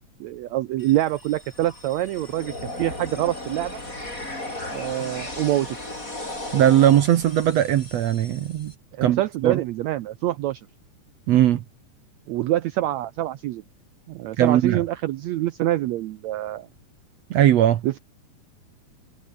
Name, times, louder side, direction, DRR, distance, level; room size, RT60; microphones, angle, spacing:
voice 1, 0.2-3.8 4.7-5.7 8.9-10.7 12.3-13.6 14.1-16.7 17.8-18.0, right 15 dB, 85° right, 1.5 m, -26 dB
sound 1, 0.8-8.7, left 1 dB, 20° left, 8.3 m, -36 dB
voice 2, 6.5-8.7 9.0-9.6 11.3-11.6 14.4-14.8 17.3-17.8, right 11 dB, 65° right, 1.7 m, -19 dB
omnidirectional pair, 4.1 m